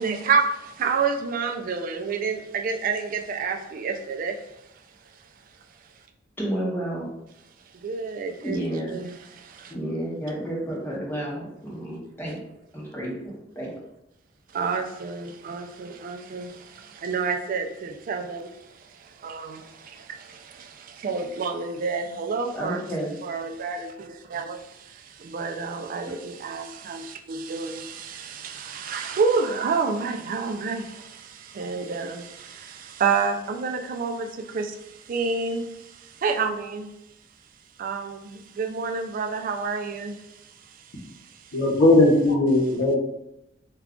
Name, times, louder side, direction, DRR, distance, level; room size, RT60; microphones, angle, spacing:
voice 1, 0.0-4.6 7.7-8.6 8.9-9.7 14.5-22.8 23.2-36.9 37.8-41.6, right 5 dB, 45° right, 4 dB, 0.3 m, -29 dB
voice 2, 6.4-7.1 8.4-8.9 9.7-12.4 12.7-13.7 22.5-23.1, right 1 dB, 10° left, -5 dB, 0.8 m, -31 dB
voice 3, 41.5-43.0, left 2 dB, 65° left, -5 dB, 0.8 m, -18 dB
2.3 x 2.3 x 3.6 m, 0.84 s
head